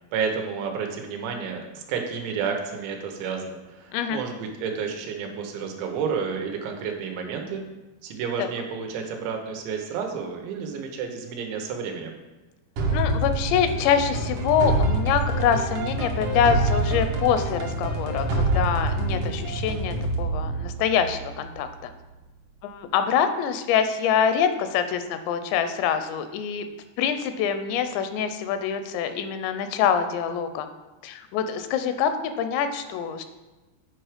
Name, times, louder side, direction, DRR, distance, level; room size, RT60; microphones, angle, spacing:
voice 1, 0.1-7.6 8.0-12.2, right 6 dB, 90° right, 3 dB, 3.3 m, -31 dB
sound 1, 12.8-21.6, right 2 dB, 70° right, 1.8 m, -26 dB
voice 2, 12.9-21.9 22.6-26.7 27.0-30.7 31.0-33.2, left 8 dB, 85° left, 9 dB, 2.8 m, -25 dB
8.8 x 4.5 x 5.0 m, 1.1 s
omnidirectional pair, 5.1 m